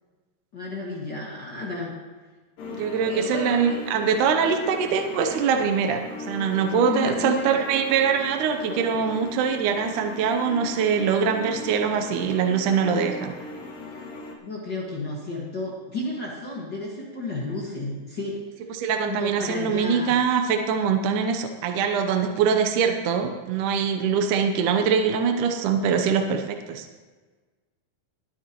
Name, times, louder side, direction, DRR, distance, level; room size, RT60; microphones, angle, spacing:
voice 1, 0.5-1.9 2.7-3.8 6.8-7.7 8.7-9.2 14.4-18.4 19.1-20.2, left 2 dB, 45° left, -4 dB, 1.6 m, -32 dB
sound 1, 2.6-14.3, left 2 dB, 75° left, 2.9 m, -38 dB
voice 2, 2.7-13.3 18.7-26.9, right 6 dB, 75° right, 5 dB, 2.1 m, -23 dB
20.5 x 9.6 x 3.0 m, 1.3 s
omnidirectional pair, 4.0 m